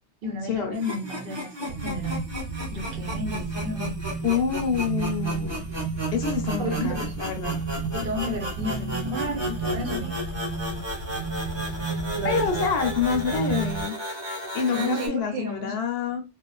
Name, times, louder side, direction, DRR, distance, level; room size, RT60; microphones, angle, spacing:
voice 1, 0.2-2.2 2.7-3.9 6.6-7.2 7.9-10.2 12.1-12.6 14.7-15.7, left 1 dB, 55° right, 0.8 m, -32 dB
sound 1, 0.7-15.1, equal, 25° right, 0.8 m, -34 dB
sound 2, 1.7-13.8, right 4 dB, 85° right, 0.9 m, -32 dB
voice 2, 4.2-5.6 6.1-7.6 11.8-12.0 12.2-14.0 14.5-16.2, left 6 dB, 65° left, 0.9 m, -27 dB
2.4 x 2.4 x 2.2 m
omnidirectional pair, 1.2 m